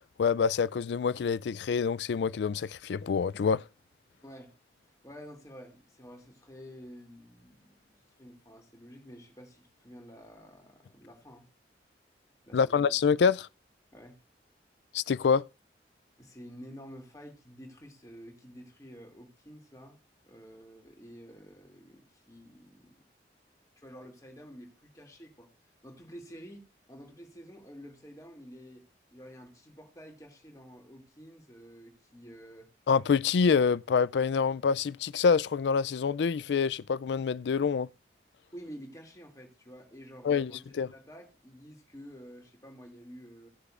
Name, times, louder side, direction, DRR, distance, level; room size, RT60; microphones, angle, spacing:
voice 1, 0.2-3.6 12.5-13.5 14.9-15.4 32.9-37.9 40.2-40.5 40.8-40.9, left 6 dB, 80° left, 0.4 m, -26 dB
voice 2, 4.2-4.5 5.0-11.5 12.4-12.9 13.9-14.2 16.2-20.0 20.3-23.0 23.8-25.5 25.8-28.9 29.1-32.7 38.5-43.5, equal, 20° left, 2.5 m, -50 dB
17.5 x 6.6 x 2.5 m
head